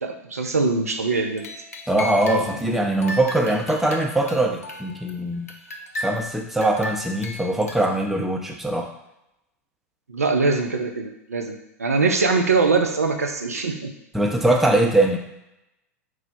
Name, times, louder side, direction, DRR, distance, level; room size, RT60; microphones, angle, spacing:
voice 1, 0.0-1.5 10.1-13.9, right 4 dB, 75° right, 3 dB, 0.5 m, -22 dB
sound 1, 1.1-2.6 3.0-5.1 5.5-8.1, left 1 dB, 75° left, 0.5 m, -35 dB
voice 2, 1.9-5.5 6.0-8.9 14.1-15.2, right 1 dB, 5° right, 1 dB, 0.5 m, -22 dB
4.7 x 2.0 x 4.0 m, 0.86 s
figure-of-eight pair, 90°, 8 cm